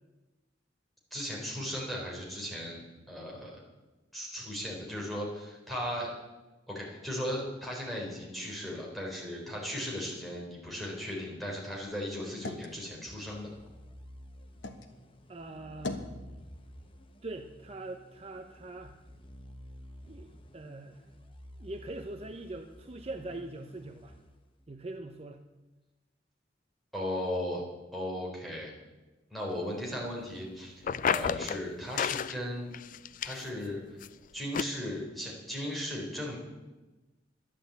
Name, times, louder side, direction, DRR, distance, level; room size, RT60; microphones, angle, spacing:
voice 1, 1.1-3.6 4.1-6.1 6.7-13.5 26.9-27.6 27.9-28.7 29.3-30.8 31.1-32.7 33.2-34.0 34.3-36.4, left 1 dB, ahead, -3 dB, 3.8 m, -36 dB
sound 1, 11.1-14.9 15.3-16.2, left 2 dB, 75° left, 1.3 m, -44 dB
sound 2, 13.1-24.9, equal, 30° left, 1.1 m, -52 dB
voice 2, 15.3-16.1 17.2-19.0 20.1-21.1 21.6-24.2 24.7-25.4 30.9-31.1, right 2 dB, 35° right, 6 dB, 0.7 m, -42 dB
sound 3, 30.8-31.6 32.0-32.4 32.7-33.6 34.0-34.1 34.5-34.6, left 7 dB, 45° left, 0.3 m, -31 dB
11.5 x 10.0 x 8.0 m, 1.1 s
head